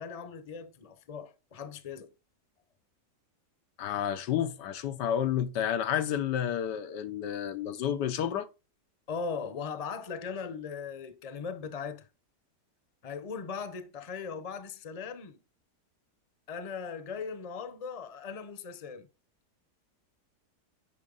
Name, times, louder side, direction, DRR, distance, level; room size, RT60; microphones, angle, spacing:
voice 1, 0.0-2.1 9.1-12.1 13.0-15.4 16.5-19.1, left 5 dB, 30° left, 0.7 m, -39 dB
voice 2, 3.8-8.5, left 9 dB, 85° left, 1.4 m, -30 dB
9.8 x 5.7 x 3.9 m
omnidirectional pair, 1.8 m